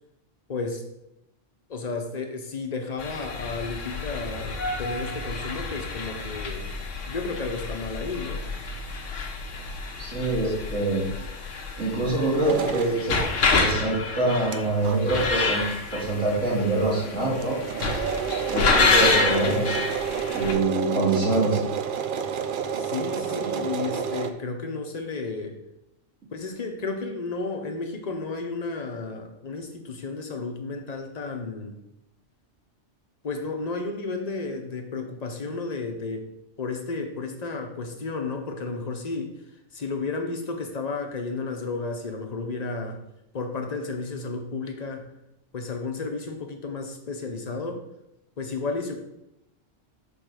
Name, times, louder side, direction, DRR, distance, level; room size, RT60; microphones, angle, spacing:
voice 1, 0.5-0.8 1.7-6.7 7.1-8.4 22.8-25.6 26.3-31.8 33.2-36.3 36.6-39.3 39.7-43.0 43.3-45.1 45.5-47.8 48.4-49.0, left 3 dB, 35° left, 4 dB, 0.9 m, -32 dB
sound 1, 3.0-20.5, left 3 dB, 75° left, 1.3 m, -28 dB
voice 2, 10.0-11.1 11.8-13.2 13.5-15.6 15.9-17.5 18.5-19.8 20.3-21.6, right 2 dB, 85° right, -6 dB, 2.9 m, -25 dB
sound 2, 12.4-12.9 13.7-13.8 14.1-14.2 14.5-14.6 14.8-15.0 15.6-15.7 15.9-16.0 16.4-16.5 16.8-24.3, right 7 dB, 60° right, 0.6 m, -30 dB
5.3 x 4.8 x 6.3 m, 0.87 s
omnidirectional pair, 1.3 m